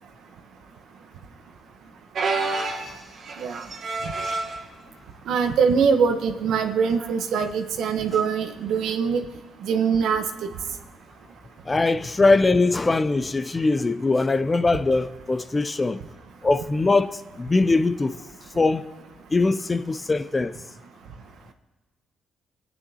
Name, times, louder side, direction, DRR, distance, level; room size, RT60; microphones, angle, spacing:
sound 1, 2.1-4.6 5.4-5.6 6.0-6.1 7.0-7.2 8.8-8.9, right 3 dB, 60° right, 1.7 m, -29 dB
voice 1, 5.3-9.2 9.6-10.2, right 6 dB, 75° right, 1.0 m, -22 dB
voice 2, 11.7-16.0 16.4-18.2 18.5-18.9 19.3-20.6, left 3 dB, 25° left, 0.5 m, -21 dB
22.5 x 9.1 x 2.8 m
cardioid pair, 90°, 0 cm